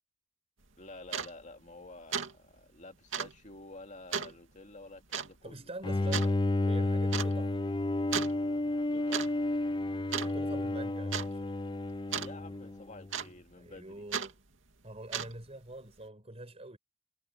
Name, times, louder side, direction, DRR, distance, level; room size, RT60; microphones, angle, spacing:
sound 1, 0.6-0.7 1.1-1.3 1.7-1.9 2.1-2.3 2.6-2.7 3.1-3.3 4.1-4.3 5.1-5.3 6.1-6.3 7.1-7.3 8.1-8.4 8.9-9.3 9.5-9.8 10.1-10.6 11.1-11.3 12.1-12.3 13.1-13.5 14.1-14.3 15.0-15.5, right 7 dB, 75° right, 2.6 m, -34 dB
voice 1, 0.8-5.7 6.0-6.4 7.1-7.4 8.9-9.3 12.1-14.0, left 2 dB, 40° left, 2.3 m, -50 dB
voice 2, 5.4-6.3 6.7-7.6 10.1-11.5 13.6-14.4 14.8-16.8, right 2 dB, 30° right, 5.0 m, -45 dB
Bowed string instrument, 5.8-13.1, left 2 dB, 25° left, 0.5 m, -31 dB
head